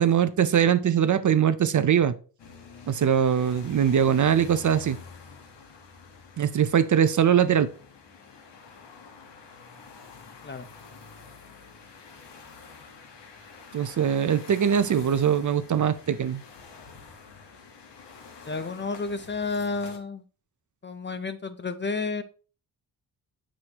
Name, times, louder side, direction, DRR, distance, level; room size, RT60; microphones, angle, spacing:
voice 1, 0.0-2.1 2.9-5.0 6.4-7.7 13.7-16.4, right 8 dB, 50° right, 0.5 m, -22 dB
sound 1, 2.4-20.0, left 5 dB, 90° left, 1.3 m, -48 dB
voice 2, 18.5-20.2 20.8-22.2, left 4 dB, 25° left, 0.5 m, -31 dB
8.1 x 6.2 x 2.9 m
wide cardioid pair, 130°, 41 cm